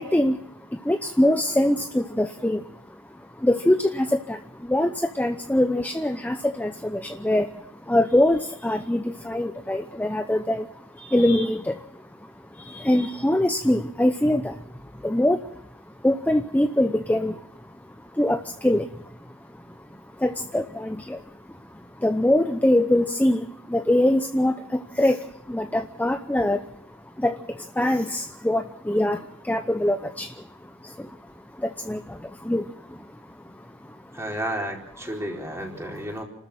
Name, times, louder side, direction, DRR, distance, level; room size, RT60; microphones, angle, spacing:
voice 1, 0.0-3.0 3.3-15.6 16.0-19.4 19.7-21.2 21.5-31.2 31.5-34.0, left 1 dB, 10° left, 7 dB, 0.7 m, -24 dB
voice 2, 34.1-36.2, right 1 dB, 15° right, 0 dB, 4.3 m, -32 dB
29.5 x 13.5 x 7.3 m, 0.74 s
head